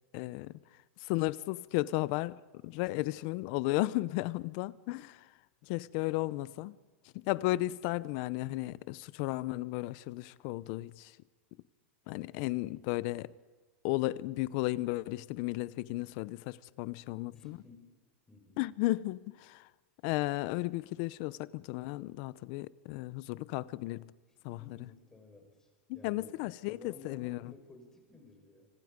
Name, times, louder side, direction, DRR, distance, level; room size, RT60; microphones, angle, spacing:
voice 1, 0.1-0.6 1.0-5.3 5.6-6.8 7.1-11.2 12.1-13.3 13.8-17.6 18.6-19.7 20.0-24.1 24.4-24.8 25.9-27.5, left 19 dB, 50° left, 0.7 m, -34 dB
voice 2, 2.9-3.4 17.3-17.9 18.3-18.6 24.6-28.7, left 3 dB, 10° left, 5.3 m, -56 dB
27.5 x 25.0 x 5.2 m
supercardioid pair, 150°, 7 cm